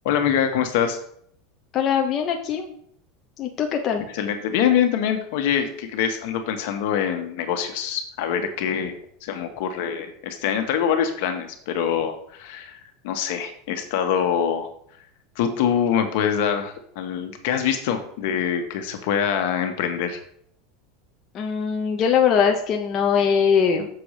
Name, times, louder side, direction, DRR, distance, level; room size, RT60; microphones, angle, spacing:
voice 1, 0.0-1.0 4.1-8.9 9.2-14.7 15.3-20.2, left 8 dB, 65° left, 6 dB, 1.5 m, -24 dB
voice 2, 1.7-2.6 3.4-4.0 21.3-23.9, left 7 dB, 30° left, 2 dB, 0.9 m, -21 dB
7.0 x 4.8 x 6.6 m, 0.65 s
supercardioid pair, 155°, 0 cm